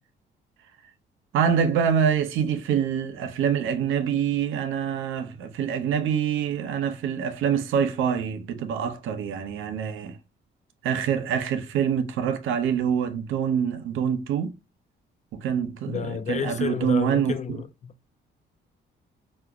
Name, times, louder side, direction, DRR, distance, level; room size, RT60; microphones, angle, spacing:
voice 1, 1.3-10.2 10.8-14.6 15.3-17.3, right 8 dB, 85° right, 0.6 m, -25 dB
voice 2, 15.9-17.9, left 7 dB, 35° left, 0.4 m, -30 dB
4.4 x 2.1 x 2.3 m
cardioid pair, 90°, 20 cm